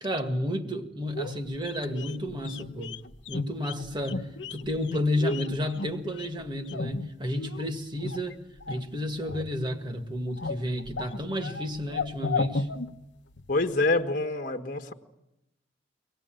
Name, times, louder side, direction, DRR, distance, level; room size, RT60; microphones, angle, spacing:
voice 1, 0.0-2.9 3.3-8.4 8.7-12.7, left 1 dB, 25° right, 5 dB, 1.9 m, -31 dB
sound 1, 1.1-7.6 8.0-8.9 9.2-9.9 10.2-13.6 13.8-13.9, left 3 dB, 70° left, 1.0 m, -35 dB
voice 2, 13.5-14.9, left 2 dB, 45° left, 6 dB, 1.6 m, -26 dB
25.0 x 19.0 x 9.1 m, 0.91 s
head